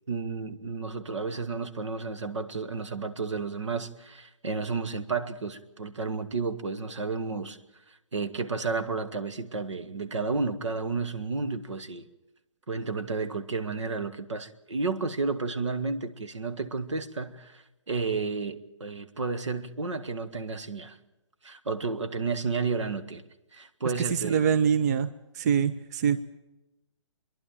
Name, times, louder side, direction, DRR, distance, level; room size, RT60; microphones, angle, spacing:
voice 1, 0.1-7.6 8.1-12.0 12.7-21.0 21.4-23.2 23.5-24.4, right 4 dB, 70° right, 1.5 m, -32 dB
voice 2, 24.1-25.1 25.4-26.2, right 7 dB, 35° right, 0.6 m, -24 dB
27.5 x 11.0 x 9.0 m
figure-of-eight pair, 135°, 16 cm